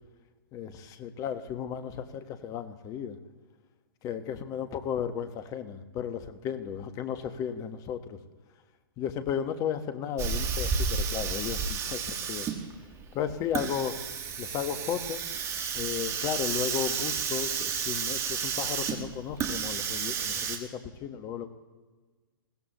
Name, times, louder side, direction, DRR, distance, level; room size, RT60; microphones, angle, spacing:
voice 1, 0.5-3.2 4.0-8.2 9.0-12.5 13.1-14.0 14.4-15.2 15.7-21.5, left 8 dB, 30° left, 10 dB, 1.3 m, -34 dB
Hiss, 10.2-20.6, right 6 dB, 25° right, 1.6 m, -32 dB
21.0 x 16.5 x 3.1 m, 1.3 s
hypercardioid pair, 120°, 12 cm